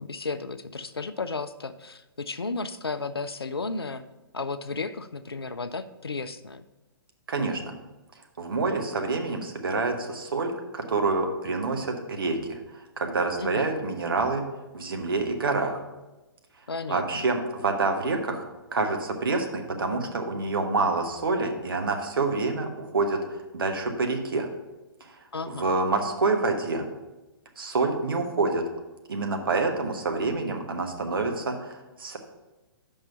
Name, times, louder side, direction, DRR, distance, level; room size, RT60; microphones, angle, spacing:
voice 1, 0.0-4.0 4.3-6.7 13.4-13.7 16.7-17.3 25.3-25.7, left 3 dB, 85° left, 11 dB, 0.4 m, -33 dB
voice 2, 7.3-7.7 8.4-14.5 14.7-15.8 16.9-18.4 18.7-24.5 25.0-25.2 25.5-26.8 27.6-28.6 29.1-32.2, right 3 dB, 65° right, 4 dB, 1.1 m, -27 dB
5.5 x 5.4 x 5.6 m, 1.1 s
figure-of-eight pair, 120°, 13 cm